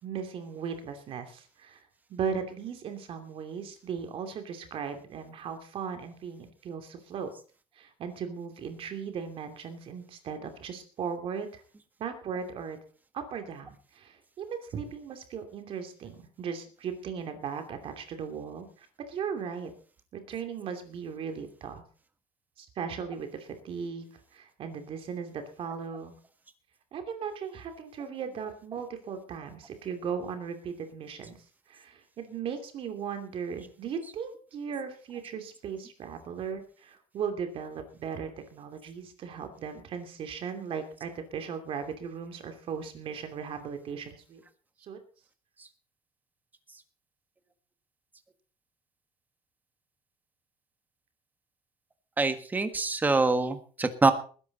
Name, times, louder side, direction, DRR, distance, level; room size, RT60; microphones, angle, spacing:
voice 1, 0.0-1.8 2.1-7.3 7.8-11.6 12.0-12.8 13.1-18.7 19.1-19.7 20.1-21.8 22.6-24.0 24.3-26.1 26.9-31.4 31.7-44.4 44.8-45.0, right 6 dB, 45° right, 6 dB, 2.7 m, -37 dB
voice 2, 52.2-54.1, right 3 dB, 15° right, 9 dB, 1.6 m, -25 dB
20.0 x 11.0 x 4.1 m, 0.40 s
cardioid pair, 155°, 13 cm